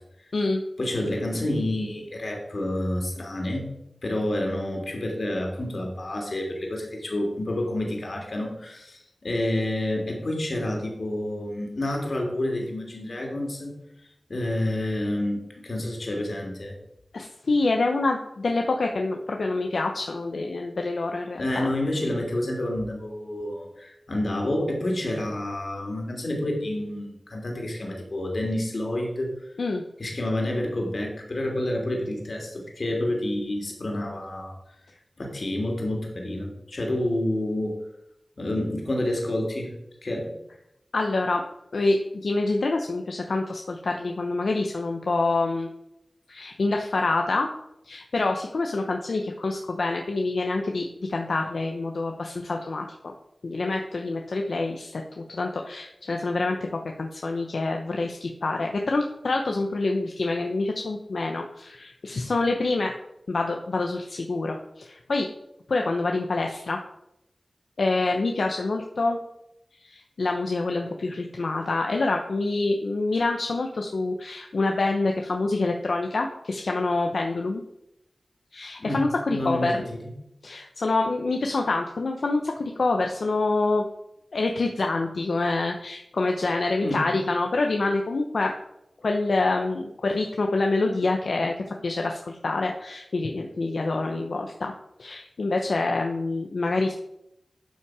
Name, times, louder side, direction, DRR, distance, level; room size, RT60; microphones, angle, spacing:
voice 1, 0.8-3.7 4.0-13.7 14.3-16.8 21.3-29.3 30.0-34.6 35.2-37.8 38.4-39.7 40.0-40.4 78.8-80.1 86.8-87.2, left 1 dB, 65° left, 1 dB, 2.9 m, -29 dB
voice 2, 17.1-21.7 29.6-29.8 40.9-41.4 41.7-45.7 46.3-47.5 47.8-52.9 53.4-62.9 63.3-65.3 65.7-66.8 67.8-69.2 69.8-77.6 78.5-79.8 80.4-83.8 84.3-88.5 89.0-91.5 91.8-94.7 95.0-96.9, left 3 dB, 90° left, 2 dB, 0.9 m, -26 dB
12.0 x 5.7 x 4.8 m, 0.81 s
wide cardioid pair, 65°, 0 cm